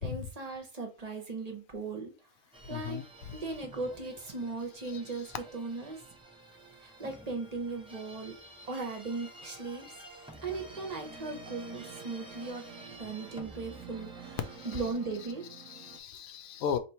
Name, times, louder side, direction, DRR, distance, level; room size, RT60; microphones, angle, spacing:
voice 1, 0.0-2.1 2.7-3.0 3.3-6.0 6.8-8.3 8.7-9.9 10.4-12.7 13.0-14.4 14.6-15.5, right 3 dB, 35° right, 0.7 m, -38 dB
sound 1, 2.5-14.9, right 1 dB, 10° right, 0.3 m, -51 dB
voice 2, 2.7-3.0 14.6-14.8 15.7-16.8, left 7 dB, 75° left, 1.0 m, -35 dB
sound 2, 10.5-16.0, right 7 dB, 80° right, 1.1 m, -49 dB
3.0 x 2.9 x 4.3 m
omnidirectional pair, 1.5 m